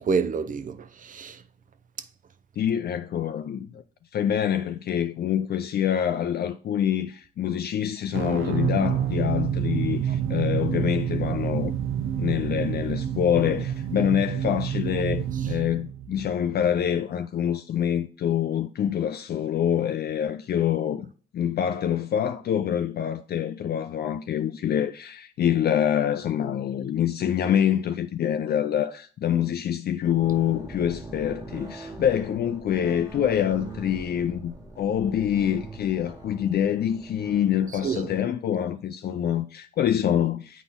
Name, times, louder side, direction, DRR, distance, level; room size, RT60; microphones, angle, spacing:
voice 1, 0.0-1.4 2.0-2.1 10.1-10.2 15.3-15.6 37.7-38.2, right 5 dB, 40° right, 0.6 m, -29 dB
voice 2, 2.6-3.8 4.1-11.7 12.2-21.1 21.3-40.6, left 9 dB, 55° left, 0.5 m, -26 dB
sound 1, 8.1-16.8, right 9 dB, 80° right, 0.7 m, -28 dB
sound 2, 30.0-38.2, right 3 dB, 15° right, 1.6 m, -42 dB
8.1 x 4.2 x 3.6 m
cardioid pair, 90°, 20 cm